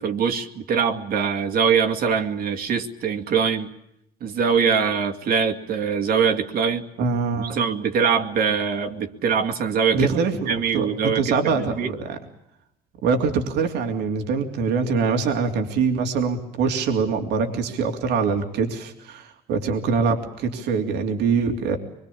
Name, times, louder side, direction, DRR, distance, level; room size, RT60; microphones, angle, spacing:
voice 1, 0.0-3.7 4.2-6.8 7.4-10.1 10.5-11.9, right 6 dB, 60° right, 5 dB, 2.4 m, -23 dB
voice 2, 7.0-7.6 9.9-12.2 13.0-21.8, right 5 dB, 85° right, 4 dB, 3.1 m, -24 dB
24.5 x 23.0 x 8.6 m, 0.81 s
cardioid pair, 110°, 17 cm